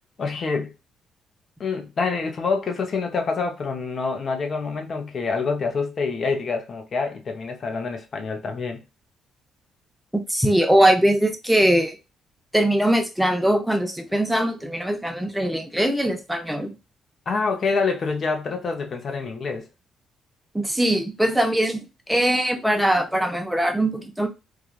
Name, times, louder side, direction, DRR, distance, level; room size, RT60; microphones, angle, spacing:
voice 1, 0.2-0.7 1.6-8.8 17.3-19.7, left 4 dB, 50° left, 0.8 m, -26 dB
voice 2, 10.1-12.0 12.5-16.7 20.5-24.3, right 1 dB, 5° right, 0.7 m, -21 dB
3.2 x 2.4 x 2.4 m
cardioid pair, 90°, 0 cm